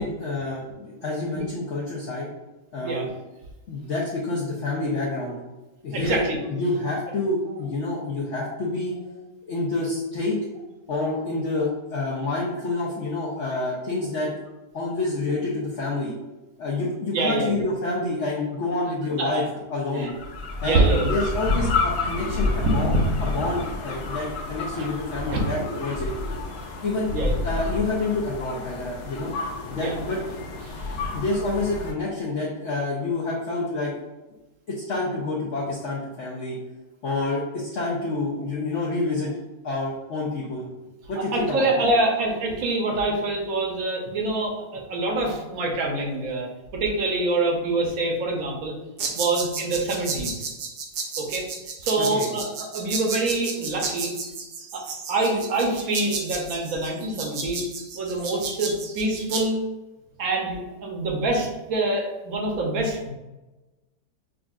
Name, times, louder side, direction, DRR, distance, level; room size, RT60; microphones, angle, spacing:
voice 1, 0.0-2.3 2.7-3.1 3.7-5.4 5.8-8.9 9.5-10.4 10.9-14.3 14.7-16.1 16.6-19.4 19.7-20.1 20.6-22.9 23.2-26.1 26.8-27.1 27.4-29.3 29.7-30.2 31.1-34.0 34.7-36.6 37.0-39.3 39.6-40.7 41.1-41.9 52.0-52.3, left 2 dB, 65° left, -4 dB, 0.8 m, -28 dB
voice 2, 5.9-6.4 17.1-17.6 19.2-19.4 19.9-20.1 20.6-21.1 22.6-22.7 23.2-23.4 24.7-24.9 25.3-25.4 27.1-27.4 29.8-29.9 30.6-31.0 41.2-48.7 49.1-50.4 51.2-51.5 51.8-54.1 54.7-54.8 55.1-57.7 57.9-59.6 60.2-63.1, right 2 dB, 65° right, 0 dB, 1.0 m, -25 dB
sound 1, 20.1-31.9, left 3 dB, 90° left, 1.3 m, -29 dB
sound 2, 49.0-59.4, right 5 dB, 80° right, 1.3 m, -32 dB
6.3 x 2.4 x 2.3 m, 1.1 s
omnidirectional pair, 1.9 m